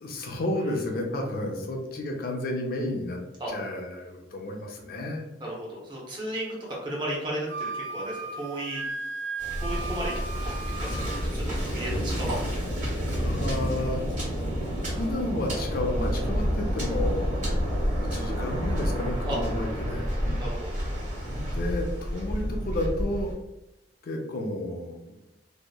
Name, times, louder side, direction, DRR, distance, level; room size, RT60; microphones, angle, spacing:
voice 1, 0.0-3.2 3.5-5.2 13.2-14.0 14.9-17.4 17.9-20.1 21.4-23.3 24.0-25.2, left 1 dB, 55° left, 2 dB, 0.4 m, -31 dB
voice 2, 5.4-8.8 9.6-10.1 10.7-12.6 19.2-19.4 20.4-20.8, right 1 dB, 25° right, -4 dB, 0.7 m, -34 dB
Wind instrument woodwind instrument, 7.5-11.2, right 3 dB, 85° right, 0.3 m, -36 dB
Waves surf, 9.4-23.3, equal, 45° right, 1.2 m, -29 dB
2.7 x 2.0 x 2.2 m, 0.93 s
head